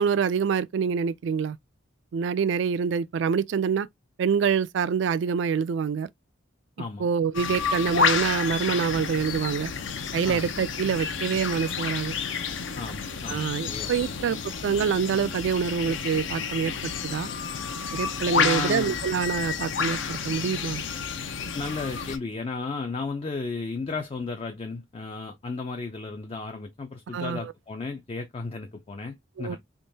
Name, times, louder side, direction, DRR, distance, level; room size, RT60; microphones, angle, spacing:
voice 1, 0.0-1.6 2.1-3.9 4.2-6.1 7.0-9.7 10.1-12.1 13.3-14.4 14.6-17.3 17.9-20.8 27.1-27.5 29.4-29.6, right 6 dB, 65° right, 0.3 m, -26 dB
sound 1, 7.3-22.2, left 6 dB, 70° left, 0.6 m, -30 dB
voice 2, 12.8-14.2 18.3-19.0 21.5-29.6, left 3 dB, 30° left, 0.4 m, -34 dB
3.6 x 2.9 x 2.6 m
head